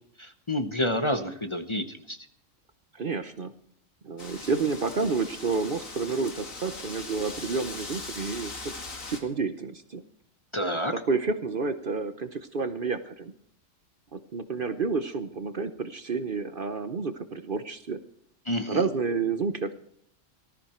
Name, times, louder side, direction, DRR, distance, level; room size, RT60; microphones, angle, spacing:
voice 1, 0.2-2.2 10.5-10.9 18.4-18.8, left 1 dB, 25° left, 7 dB, 1.0 m, -29 dB
voice 2, 2.9-3.5 4.0-8.7 9.1-10.0 11.1-13.3 14.1-18.0 18.7-19.7, right 4 dB, 45° right, 10 dB, 0.9 m, -30 dB
Wind, 4.2-9.2, left 3 dB, 90° left, 2.7 m, -40 dB
19.0 x 14.0 x 4.4 m, 0.66 s
omnidirectional pair, 1.3 m